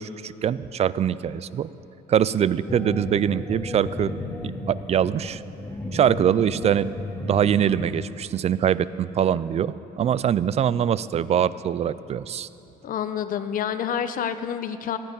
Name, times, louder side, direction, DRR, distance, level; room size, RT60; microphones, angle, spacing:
voice 1, 0.0-1.7 2.1-4.1 4.4-5.4 5.9-6.9 7.2-12.5, right 9 dB, 40° right, 17 dB, 0.4 m, -23 dB
sound 1, 2.7-7.9, left 2 dB, 10° left, 1.1 m, -33 dB
voice 2, 12.8-15.0, left 8 dB, 55° left, 11 dB, 0.8 m, -28 dB
15.0 x 12.0 x 5.4 m, 2.9 s
cardioid pair, 110°, 17 cm